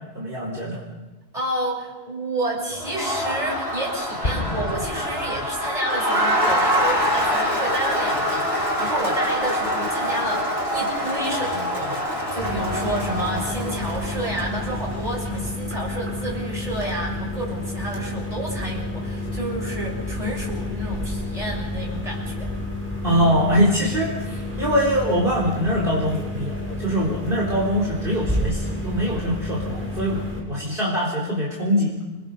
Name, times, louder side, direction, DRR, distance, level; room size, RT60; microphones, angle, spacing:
voice 1, 0.1-0.8 23.0-32.0, equal, 60° right, -4 dB, 4.3 m, -23 dB
voice 2, 1.3-22.5, right 1 dB, 35° right, -2 dB, 7.0 m, -30 dB
Crowd, 2.7-15.2, equal, 90° right, 6.7 m, -25 dB
Explosion, 4.2-6.1, left 2 dB, 45° left, 2.0 m, -30 dB
sound 1, 12.4-30.4, left 1 dB, 10° right, 6.4 m, -30 dB
29.0 x 21.0 x 5.5 m, 1.2 s
omnidirectional pair, 1.0 m